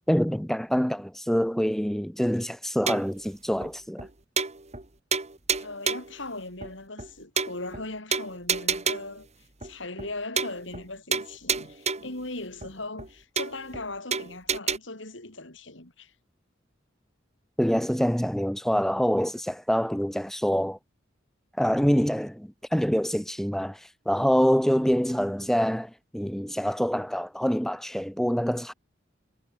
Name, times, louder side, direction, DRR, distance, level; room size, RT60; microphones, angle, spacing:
voice 1, 0.1-4.1 17.6-20.8 21.6-28.7, equal, ahead, 0.9 m, -25 dB
sound 1, 2.9-3.2 3.6-3.7 4.0-4.1 4.4-4.9 5.1-6.2 6.6-6.7 7.0-7.1 7.4-7.8 8.1-9.2 9.6-9.7 10.0-10.1 10.4-10.9 11.1-12.2 12.6-12.7 13.0-13.1 13.4-13.8 14.1-14.8, right 6 dB, 35° right, 3.4 m, -29 dB
voice 2, 5.6-9.3 9.6-16.1, left 2 dB, 70° left, 6.2 m, -39 dB
head